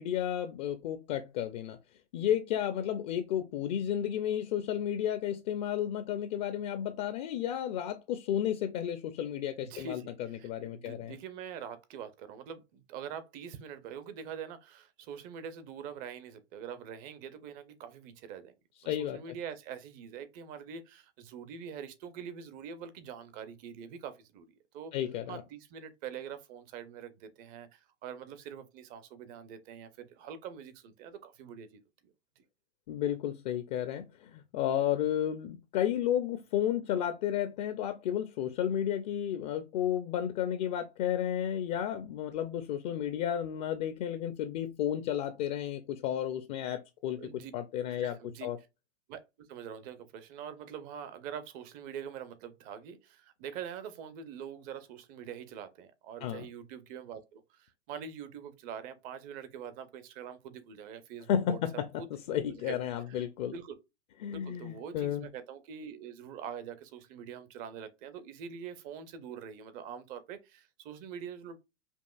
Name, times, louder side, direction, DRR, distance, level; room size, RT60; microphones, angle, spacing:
voice 1, 0.0-1.8 2.1-11.2 18.9-19.2 24.9-25.4 32.9-47.2 47.5-48.6 56.2-56.5 61.3-61.9 62.3-63.5 64.2-65.3, left 10 dB, 40° left, 0.4 m, -32 dB
voice 2, 9.6-18.5 18.8-24.5 24.7-24.9 25.3-31.8 32.4-32.5 47.2-47.5 47.9-48.5 49.1-61.6 62.0-62.1 62.5-62.8 63.1-63.3 63.5-63.8 64.3-71.6, right 7 dB, 25° right, 0.4 m, -44 dB
5.3 x 2.4 x 2.3 m
hypercardioid pair, 125°, 36 cm